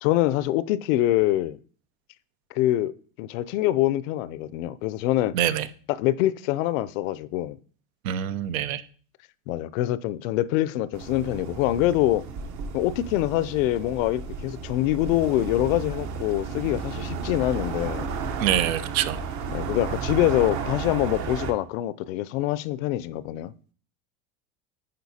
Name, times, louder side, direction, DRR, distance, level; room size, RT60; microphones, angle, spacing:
voice 1, 0.0-1.6 2.5-2.9 3.2-5.3 5.9-7.6 9.5-12.2 12.7-18.1 19.5-23.5, left 15 dB, 70° left, 0.5 m, -25 dB
voice 2, 5.3-5.7 8.0-8.8 18.4-19.2, right 10 dB, 80° right, 0.6 m, -25 dB
sound 1, 10.9-21.5, right 5 dB, 45° right, 0.8 m, -33 dB
9.5 x 3.8 x 2.8 m
supercardioid pair, 120°, 41 cm